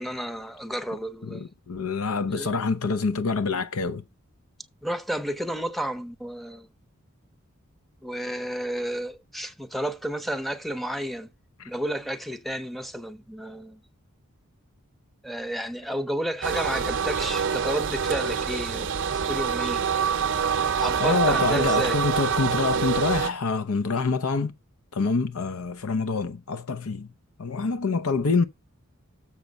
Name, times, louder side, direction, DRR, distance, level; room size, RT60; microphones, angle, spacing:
voice 1, 0.0-1.5 2.3-2.6 4.8-6.7 8.0-11.3 11.6-13.8 15.2-19.8 20.8-22.0, equal, ahead, 0.6 m, -31 dB
voice 2, 1.3-4.0 11.6-11.7 21.0-24.5 24.9-27.1 27.4-28.4, left 4 dB, 80° left, 0.6 m, -26 dB
sound 1, 16.4-23.3, right 7 dB, 60° right, 0.7 m, -26 dB
7.0 x 5.8 x 5.2 m
head